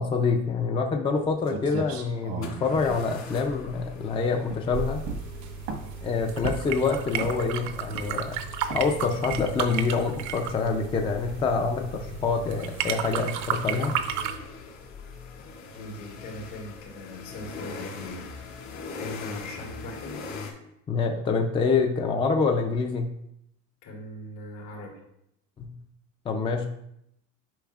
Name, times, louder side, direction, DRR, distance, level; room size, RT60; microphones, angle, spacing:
voice 1, 0.0-5.0 6.0-8.4 8.7-13.9 20.9-23.1 25.6-25.7 26.3-26.7, left 4 dB, 15° left, 3 dB, 0.4 m, -26 dB
sound 1, 1.2-1.3 2.4-20.5, left 4 dB, 55° left, 2.3 m, -43 dB
sound 2, 1.2-1.3 1.5-4.1 4.5-4.7 5.1-6.0 6.4-6.8 7.2-7.6 7.9-8.3 8.7-8.9 9.3-9.6, right 5 dB, 85° right, 1.3 m, -36 dB
sound 3, 4.7-14.4, right 9 dB, 55° right, 0.6 m, -33 dB
voice 2, 15.7-18.3 18.9-20.2 23.8-25.0, left 1 dB, 75° left, -2 dB, 2.9 m, -40 dB
10.0 x 5.5 x 2.4 m, 0.78 s
cardioid pair, 150°, 33 cm